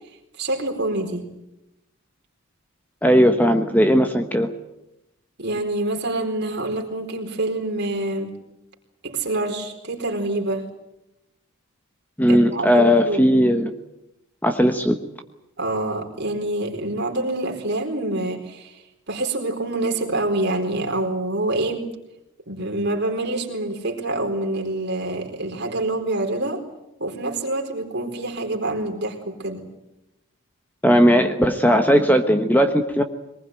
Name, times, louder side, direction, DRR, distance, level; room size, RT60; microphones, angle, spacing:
voice 1, 0.4-1.3 5.4-8.3 9.0-10.7 12.3-13.3 15.6-21.8 22.5-26.6 27.0-29.7, right 2 dB, 50° right, 3 dB, 4.3 m, -26 dB
voice 2, 3.0-4.5 12.2-13.7 14.4-15.0 30.8-33.0, equal, 10° left, 7 dB, 1.1 m, -17 dB
23.0 x 20.5 x 9.2 m, 0.88 s
head